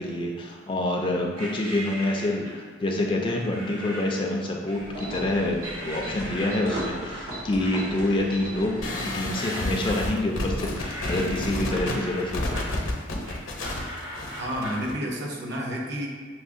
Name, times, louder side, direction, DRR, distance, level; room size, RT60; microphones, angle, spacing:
voice 1, 0.0-12.6, left 1 dB, 25° left, 0 dB, 0.3 m, -27 dB
sound 1, 1.4-2.7 3.5-4.3 4.7-5.3 5.6-14.9, equal, 70° right, 1.1 m, -39 dB
sound 2, 4.7-9.6, right 1 dB, 90° right, 1.4 m, -37 dB
sound 3, 8.8-15.0, left 1 dB, 75° left, 0.7 m, -31 dB
voice 2, 14.4-16.1, equal, 55° right, -2 dB, 0.7 m, -30 dB
5.9 x 2.0 x 2.5 m, 1.6 s
head